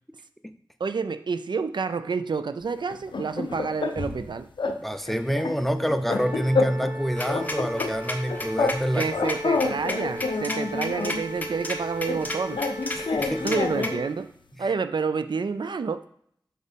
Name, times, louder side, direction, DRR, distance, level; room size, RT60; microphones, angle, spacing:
voice 1, 0.8-4.5 8.9-12.6 13.4-14.3 14.6-16.0, right 5 dB, 70° right, 11 dB, 0.4 m, -29 dB
sound 1, 2.9-4.2 4.6-4.8 5.1-7.0 7.3-8.8 9.1-11.2 12.1-14.1, left 4 dB, 75° left, 0.6 m, -28 dB
voice 2, 4.7-9.1 13.0-13.5, equal, ahead, 9 dB, 0.6 m, -27 dB
sound 2, 6.1-14.1, equal, 25° right, 0.9 m, -37 dB
sound 3, 7.2-13.9, left 1 dB, 20° left, 1.1 m, -33 dB
6.1 x 4.2 x 5.2 m, 0.66 s
cardioid pair, 45°, 8 cm